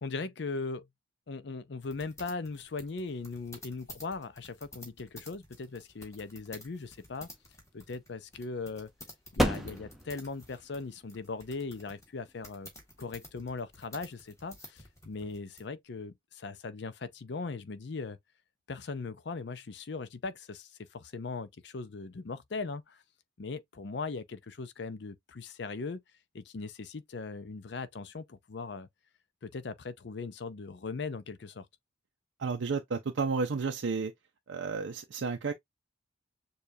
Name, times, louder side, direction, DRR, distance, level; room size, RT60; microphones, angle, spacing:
voice 1, 0.0-0.9 1.3-7.3 7.7-8.9 9.3-12.7 13.0-18.2 18.7-23.0 23.4-26.0 26.3-28.9 29.4-31.7, left 4 dB, 60° left, 0.5 m, -39 dB
sound 1, 1.8-15.7, left 1 dB, 15° left, 1.6 m, -52 dB
sound 2, 7.0-14.1, equal, ahead, 0.7 m, -37 dB
voice 2, 32.4-34.1 34.5-35.5, right 4 dB, 70° right, 0.5 m, -32 dB
6.7 x 2.3 x 2.7 m
head